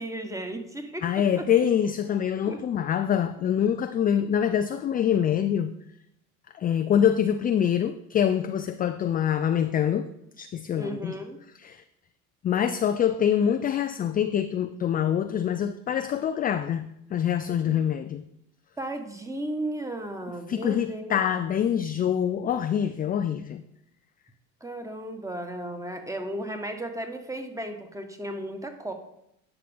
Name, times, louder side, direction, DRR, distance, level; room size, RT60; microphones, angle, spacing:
voice 1, 0.0-1.1 1.4-1.5 2.5-2.6 10.8-11.4 17.7-17.9 18.8-21.2 24.6-28.9, right 1 dB, 10° right, 5 dB, 1.4 m, -35 dB
voice 2, 1.0-5.7 6.5-10.1 10.4-11.2 11.6-11.8 12.4-18.2 20.5-23.6, left 9 dB, 25° left, 9 dB, 0.3 m, -25 dB
11.0 x 5.8 x 3.6 m, 0.79 s
hypercardioid pair, 70°, 42 cm